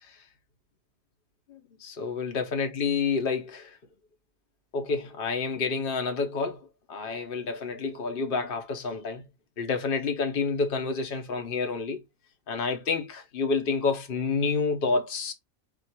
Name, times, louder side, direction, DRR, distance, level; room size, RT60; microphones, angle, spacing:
voice 1, 1.5-3.8 4.7-9.2 9.6-12.0 12.5-15.3, left 4 dB, 45° left, 1.0 m, -29 dB
4.3 x 2.6 x 4.4 m
omnidirectional pair, 1.5 m